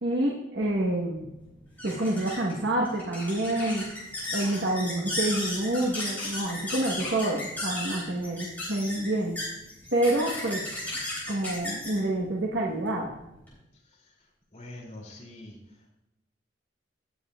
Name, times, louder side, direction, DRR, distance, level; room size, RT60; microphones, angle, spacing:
voice 1, 0.0-1.2 1.8-3.9 4.3-9.4 9.9-10.6 11.3-13.1, right 1 dB, 75° right, -3 dB, 1.3 m, -28 dB
sound 1, 0.6-13.5, left 1 dB, 10° left, 3.6 m, -36 dB
voice 2, 14.5-15.5, left 1 dB, 40° left, -4 dB, 2.9 m, -43 dB
17.5 x 7.4 x 2.4 m, 0.89 s
head